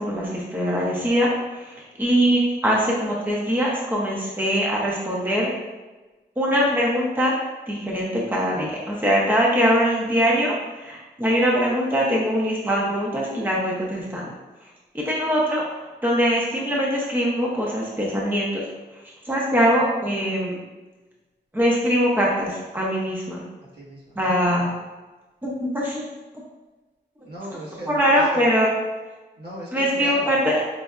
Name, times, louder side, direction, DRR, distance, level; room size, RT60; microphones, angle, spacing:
voice 1, 0.0-5.5 6.4-7.4 7.7-14.3 14.6-14.7 14.9-18.6 19.3-20.6 21.5-23.4 24.2-24.7 25.4-26.0 27.9-28.7 29.7-30.6, equal, 10° right, -3 dB, 0.7 m, -22 dB
voice 2, 23.7-24.7 27.2-28.5 29.4-30.3, right 1 dB, 65° right, -7 dB, 1.4 m, -38 dB
5.2 x 3.3 x 2.4 m, 1.2 s
wide cardioid pair, 130°, 18 cm